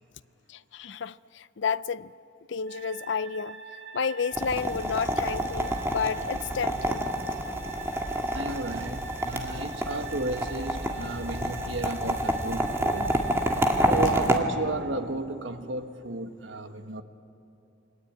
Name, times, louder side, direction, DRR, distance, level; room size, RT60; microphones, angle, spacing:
voice 1, 0.5-2.1 2.5-3.6 3.9-7.1, left 6 dB, 70° left, 0.5 m, -31 dB
sound 1, 2.7-14.2, right 5 dB, 55° right, 5.6 m, -45 dB
sound 2, 4.3-14.4, right 1 dB, 15° right, 1.9 m, -28 dB
voice 2, 8.3-13.2 13.8-17.0, right 2 dB, 75° right, 1.5 m, -33 dB
29.0 x 23.0 x 8.9 m
head